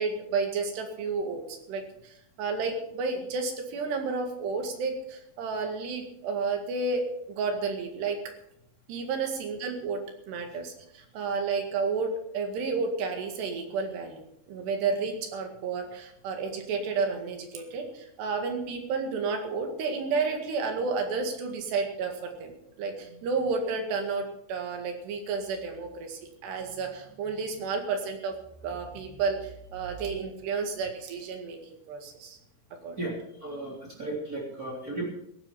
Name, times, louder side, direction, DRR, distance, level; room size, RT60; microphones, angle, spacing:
voice 1, 0.0-8.2 8.9-28.3 28.6-31.6 31.9-32.4 32.8-33.0, right 4 dB, 85° right, 4 dB, 4.1 m, -31 dB
voice 2, 33.4-35.1, right 2 dB, 25° right, -4 dB, 3.5 m, -34 dB
16.5 x 10.5 x 5.7 m, 0.76 s
omnidirectional pair, 4.7 m